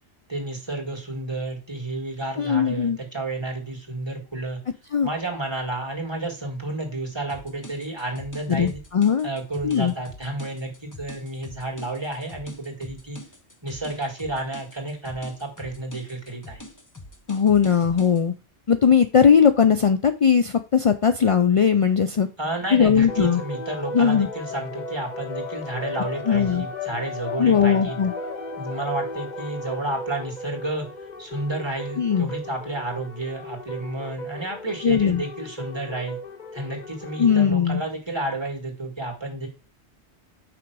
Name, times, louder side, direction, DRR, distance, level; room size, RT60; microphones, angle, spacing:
voice 1, 0.3-4.6 5.0-8.8 9.2-13.2 13.6-16.6 22.4-28.0 28.6-30.9 31.2-36.2 36.5-39.5, right 2 dB, 25° right, 0 dB, 2.1 m, -31 dB
voice 2, 2.4-3.0 4.9-5.1 8.5-9.3 9.6-9.9 17.3-18.3 18.7-22.3 22.7-23.4 23.9-24.3 26.3-26.7 27.4-28.1 32.0-32.3 34.8-35.2 37.2-37.8, left 7 dB, 60° left, 9 dB, 0.3 m, -19 dB
sound 1, 7.3-18.2, left 1 dB, 20° left, 0.8 m, -44 dB
sound 2, 23.1-37.5, left 3 dB, 45° left, 0.9 m, -35 dB
5.9 x 5.2 x 4.7 m, 0.31 s
omnidirectional pair, 1.1 m